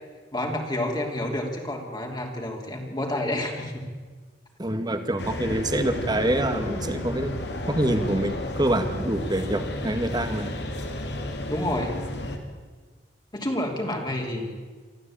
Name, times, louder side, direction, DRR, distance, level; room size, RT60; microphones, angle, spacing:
voice 1, 0.3-3.8 11.5-11.9 13.3-14.5, left 1 dB, 25° left, 1 dB, 3.0 m, -29 dB
voice 2, 4.6-7.3 7.7-10.6, right 1 dB, 25° right, 8 dB, 1.8 m, -26 dB
sound 1, 5.2-12.4, left 1 dB, 70° left, 2.7 m, -32 dB
24.0 x 14.5 x 8.8 m, 1.4 s
head